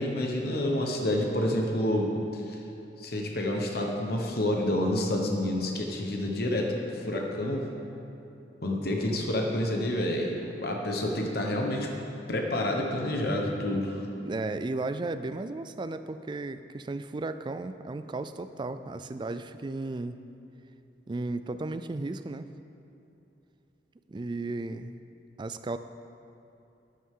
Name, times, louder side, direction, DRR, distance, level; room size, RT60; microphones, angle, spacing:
voice 1, 0.0-2.6 3.0-7.7 8.6-11.9 12.3-14.1, left 1 dB, 55° left, 1 dB, 1.2 m, -29 dB
voice 2, 14.2-20.2 21.1-22.5 24.1-25.0 25.4-25.8, right 2 dB, 25° right, 11 dB, 0.3 m, -34 dB
12.5 x 11.0 x 3.8 m, 2.8 s
head